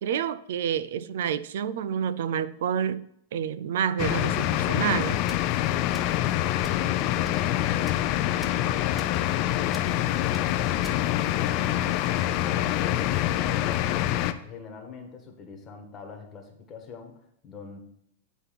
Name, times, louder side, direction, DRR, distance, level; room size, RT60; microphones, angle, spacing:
voice 1, 0.0-3.0 3.3-5.2, right 8 dB, 70° right, 17 dB, 0.5 m, -28 dB
sound 1, 4.0-14.3, left 13 dB, 40° left, 0.5 m, -25 dB
sound 2, 5.3-5.5 5.9-6.2 6.6-6.9 7.2-7.4 7.8-8.1 8.4-8.6 9.0-9.2 9.7-9.9 10.3-10.5 10.8-11.0, equal, ahead, 0.7 m, -44 dB
voice 2, 6.8-11.9 12.2-14.0 14.4-17.8, left 5 dB, 25° left, 4 dB, 1.4 m, -43 dB
9.0 x 4.1 x 5.8 m, 0.74 s
supercardioid pair, 155°, 0 cm